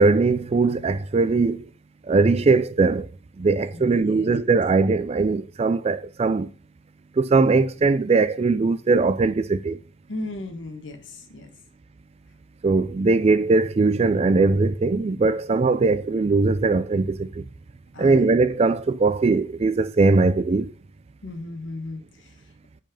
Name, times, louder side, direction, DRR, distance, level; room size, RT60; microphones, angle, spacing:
voice 1, 0.0-1.7 2.1-3.1 3.4-6.5 7.2-9.8 12.6-17.4 18.0-20.7, right 3 dB, 30° right, 0.3 m, -20 dB
voice 2, 3.6-4.3 10.1-11.5 17.9-18.3 21.2-22.4, left 2 dB, 65° left, 1.4 m, -36 dB
5.4 x 5.3 x 5.1 m
head